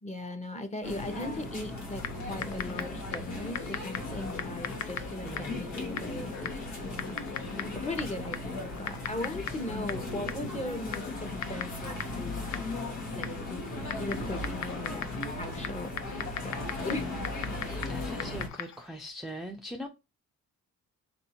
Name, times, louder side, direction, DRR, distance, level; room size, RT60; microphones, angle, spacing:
voice 1, 0.0-12.7 13.1-15.1 15.4-15.9 16.4-17.0, left 2 dB, 25° left, 0.9 m, -39 dB
Passing crowd in Latin Quarter of Paris, 0.8-18.5, left 2 dB, 85° left, 1.2 m, -37 dB
Typing, 2.0-18.9, left 9 dB, 65° left, 0.5 m, -41 dB
voice 2, 5.2-5.6 16.9-17.2 17.7-19.9, equal, ahead, 0.5 m, -41 dB
3.5 x 2.6 x 4.3 m
cardioid pair, 90°, 30 cm